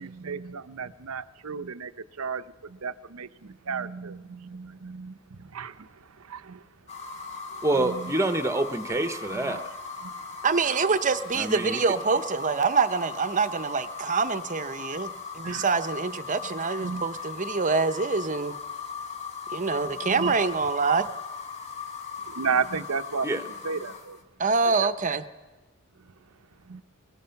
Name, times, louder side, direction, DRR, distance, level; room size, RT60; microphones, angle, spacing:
voice 1, 0.0-6.7 7.0-7.1 7.5-8.1 9.3-9.6 10.0-10.4 15.4-15.7 16.8-17.1 20.0-20.4 20.9-21.1 22.2-23.3 23.6-24.2 24.7-24.9 26.0-26.1 26.6-26.8, right 5 dB, 85° right, 11 dB, 0.7 m, -34 dB
sound 1, 6.9-24.2, left 5 dB, 30° left, 1.7 m, -38 dB
voice 2, 7.6-9.6 11.3-11.8 23.2-23.4, right 2 dB, 15° right, 9 dB, 1.1 m, -26 dB
voice 3, 10.4-18.5 19.5-21.1 24.4-25.2, right 4 dB, 35° right, 12 dB, 0.8 m, -25 dB
22.0 x 20.0 x 5.8 m, 1.2 s
head